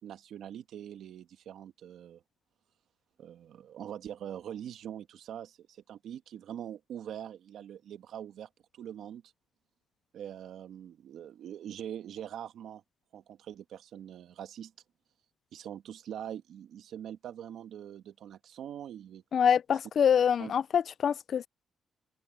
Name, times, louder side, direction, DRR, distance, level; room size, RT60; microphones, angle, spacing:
voice 1, 0.0-2.2 3.2-9.2 10.1-12.8 13.1-14.7 15.5-19.2 20.4-20.5, right 10 dB, 70° right, 1.6 m, -43 dB
voice 2, 19.3-21.5, left 8 dB, 55° left, 0.4 m, -25 dB
open air
cardioid pair, 90°, 0 cm